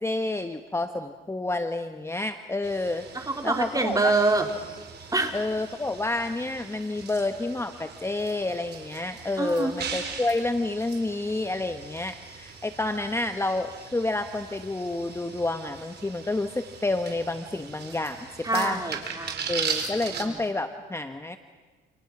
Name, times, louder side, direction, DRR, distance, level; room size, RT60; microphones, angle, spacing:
voice 1, 0.0-4.1 5.3-18.8 19.5-21.4, left 2 dB, 15° left, 8 dB, 1.2 m, -29 dB
sound 1, 2.6-20.2, right 6 dB, 55° right, 4.4 m, -39 dB
voice 2, 3.1-4.5 5.1-5.4 9.4-9.7 18.4-19.5 20.1-20.3, right 3 dB, 20° right, 4 dB, 3.7 m, -26 dB
29.0 x 28.0 x 6.1 m, 1.4 s
cardioid pair, 90°, 20 cm